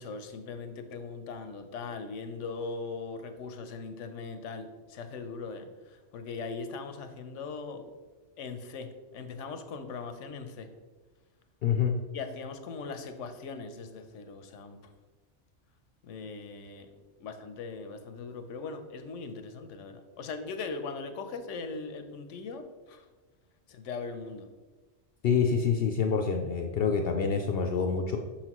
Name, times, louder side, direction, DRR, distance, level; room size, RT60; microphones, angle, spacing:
voice 1, 0.0-7.8 8.4-10.7 12.1-14.8 16.0-16.9 17.2-23.1 23.7-24.5, left 4 dB, 80° left, 8 dB, 1.0 m, -40 dB
voice 2, 11.6-11.9 25.2-28.2, left 6 dB, 65° left, 4 dB, 0.7 m, -26 dB
6.6 x 5.8 x 3.0 m, 1.3 s
omnidirectional pair, 1.2 m